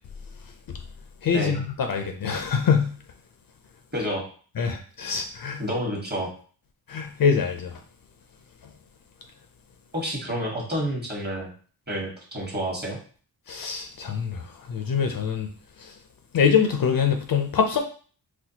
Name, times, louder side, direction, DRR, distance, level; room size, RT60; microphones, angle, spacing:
voice 1, 1.2-1.6 1.9-2.9 4.6-5.6 6.9-7.7 13.5-14.4 14.7-15.5 16.3-17.8, left 6 dB, 55° left, 5 dB, 0.5 m, -24 dB
voice 2, 3.9-4.2 5.6-6.3 9.9-11.5 11.9-13.0, equal, 25° right, -2 dB, 1.2 m, -29 dB
4.2 x 2.2 x 2.8 m, 0.41 s
wide cardioid pair, 115°, 42 cm